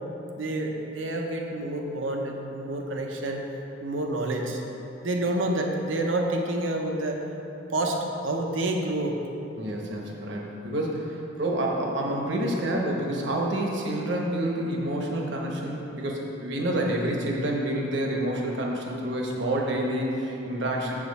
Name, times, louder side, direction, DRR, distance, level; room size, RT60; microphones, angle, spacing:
voice 1, 0.4-3.4 3.8-4.6 5.0-7.2 7.7-9.2, right 1 dB, 85° right, 2 dB, 0.8 m, -28 dB
voice 2, 9.6-20.9, right 1 dB, 65° right, -1 dB, 1.1 m, -28 dB
7.4 x 7.1 x 4.1 m, 3.0 s
head